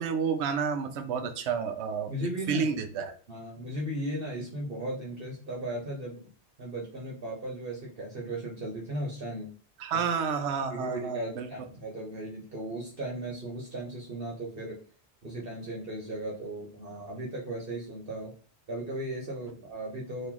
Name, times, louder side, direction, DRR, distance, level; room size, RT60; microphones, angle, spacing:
voice 1, 0.0-2.1 2.5-3.1 9.8-11.5, right 6 dB, 75° right, 8 dB, 0.9 m, -30 dB
voice 2, 2.1-2.7 3.3-6.3 6.6-9.5 9.9-10.0 10.7-14.8 15.2-18.3 18.7-20.3, right 1 dB, 55° right, -3 dB, 1.1 m, -36 dB
3.0 x 2.6 x 3.7 m, 0.41 s
omnidirectional pair, 1.2 m